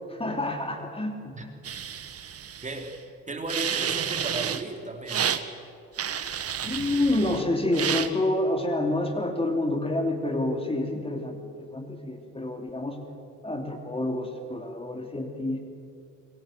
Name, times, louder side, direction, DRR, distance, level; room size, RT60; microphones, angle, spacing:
voice 1, 0.1-1.5 6.6-11.4 11.7-13.0 13.4-15.6, left 1 dB, 20° left, 4 dB, 3.1 m, -28 dB
sound 1, 1.6-3.0 3.5-4.6 5.1-5.4 6.0-7.4 7.7-8.1, right 8 dB, 50° right, 1.4 m, -30 dB
voice 2, 2.6-5.4, right 2 dB, 25° right, 3 dB, 3.4 m, -35 dB
24.5 x 22.5 x 7.8 m, 2.5 s
cardioid pair, 90°, 30 cm